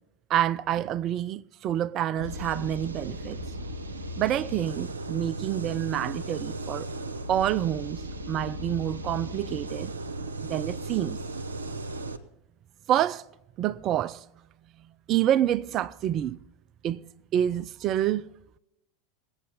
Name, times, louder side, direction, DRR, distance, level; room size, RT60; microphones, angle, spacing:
voice 1, 0.3-3.4 4.2-6.9 7.3-8.0 8.3-9.9 10.4-11.2 12.9-13.2 13.6-14.2 15.1-16.4 16.8-17.0 17.3-18.3, right 11 dB, 40° right, 0.4 m, -27 dB
sound 1, 2.2-12.2, right 1 dB, 75° right, 0.8 m, -36 dB
20.5 x 8.7 x 4.2 m
figure-of-eight pair, 80°, 0 cm